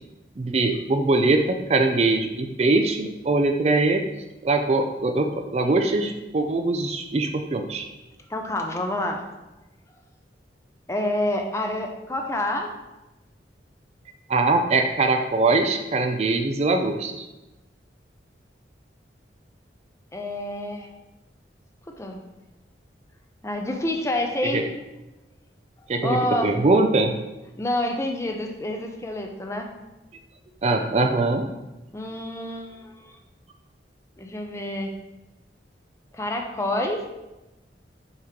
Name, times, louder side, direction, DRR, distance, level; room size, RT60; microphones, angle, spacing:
voice 1, 0.4-4.0 4.4-7.9 14.3-17.3 24.5-24.6 25.9-27.2 30.6-31.5, right 3 dB, 35° right, 5 dB, 0.4 m, -22 dB
voice 2, 8.3-9.2 10.9-12.7 20.1-20.9 22.0-22.2 23.4-24.6 26.0-26.5 27.6-29.7 31.9-33.1 34.2-34.9 36.1-37.0, left 1 dB, 15° left, 3 dB, 0.6 m, -28 dB
6.5 x 3.0 x 5.0 m, 1.0 s
head